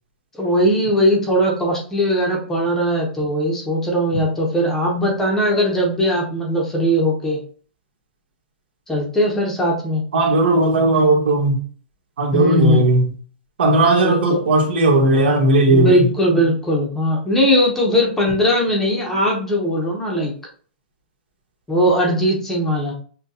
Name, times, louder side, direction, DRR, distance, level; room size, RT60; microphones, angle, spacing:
voice 1, 0.4-7.4 8.9-10.0 12.3-12.8 14.0-14.4 15.7-20.3 21.7-22.9, equal, 5° left, 0.6 m, -19 dB
voice 2, 10.1-11.5 12.2-13.1 13.6-16.1, right 2 dB, 75° right, 1.3 m, -16 dB
6.1 x 2.2 x 2.7 m
hypercardioid pair, 170°, 6 cm